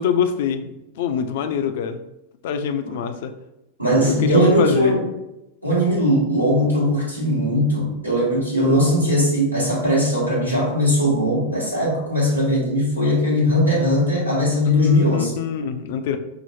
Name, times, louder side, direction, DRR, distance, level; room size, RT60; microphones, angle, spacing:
voice 1, 0.0-2.0 2.4-3.3 4.1-5.0 14.7-16.2, left 7 dB, 55° left, 8 dB, 0.4 m, -24 dB
voice 2, 3.8-5.0 5.6-15.3, equal, 85° right, -5 dB, 1.2 m, -19 dB
5.6 x 2.0 x 3.0 m, 0.90 s
figure-of-eight pair, 90°, 0 cm